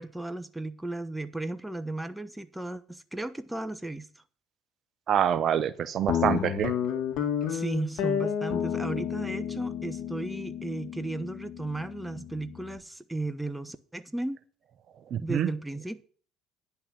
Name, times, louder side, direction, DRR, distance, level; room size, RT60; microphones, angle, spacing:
voice 1, 0.0-4.1 7.5-14.4 15.2-16.0, right 2 dB, 10° right, 12 dB, 1.0 m, -35 dB
voice 2, 5.1-6.7 15.1-15.5, right 9 dB, 50° right, 14 dB, 0.7 m, -26 dB
Guitar, 6.1-12.8, left 9 dB, 60° left, 2.3 m, -31 dB
10.0 x 5.8 x 7.4 m, 0.43 s
hypercardioid pair, 65°, 0 cm